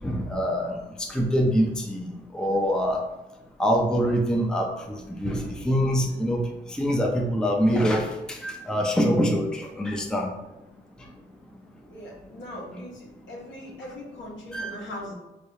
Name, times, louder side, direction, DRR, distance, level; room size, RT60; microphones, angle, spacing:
voice 1, 0.0-0.8 1.1-2.1 2.3-3.0 3.6-6.4 6.7-10.3 14.5-14.7, equal, 5° left, 1 dB, 0.5 m, -24 dB
voice 2, 11.9-15.1, left 1 dB, 65° left, -3 dB, 1.4 m, -40 dB
4.5 x 3.4 x 2.7 m, 1.0 s
cardioid pair, 90°, 20 cm